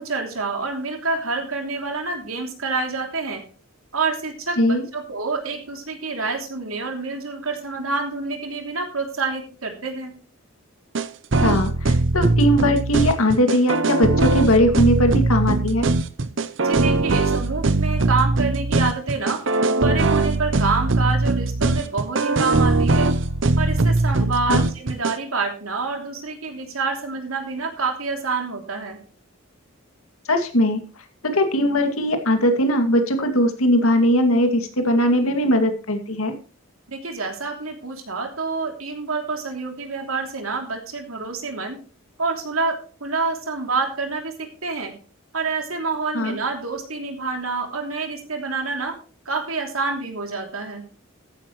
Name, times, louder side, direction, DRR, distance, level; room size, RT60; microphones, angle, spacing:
voice 1, 0.0-3.4 3.9-10.1 16.6-19.4 19.8-23.1 23.6-29.0 36.9-41.8 42.2-44.3 44.6-44.9 45.3-48.9 49.2-50.8, right 4 dB, 80° right, 3 dB, 3.0 m, -27 dB
sound 1, 10.9-25.2, right 2 dB, 60° right, 0.7 m, -20 dB
voice 2, 11.4-15.9 24.5-24.6 30.3-30.8 31.2-36.3 46.1-46.4, equal, 85° left, 6 dB, 2.4 m, -19 dB
14.0 x 10.5 x 3.1 m, 0.37 s
head